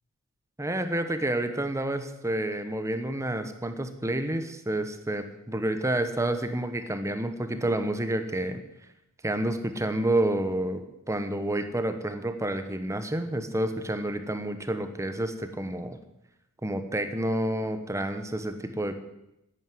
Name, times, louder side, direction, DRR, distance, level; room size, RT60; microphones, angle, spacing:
voice 1, 0.6-8.6 9.2-10.8 11.1-16.0 16.6-19.0, right 1 dB, 15° right, 8 dB, 1.1 m, -29 dB
10.5 x 9.5 x 9.4 m, 0.88 s
head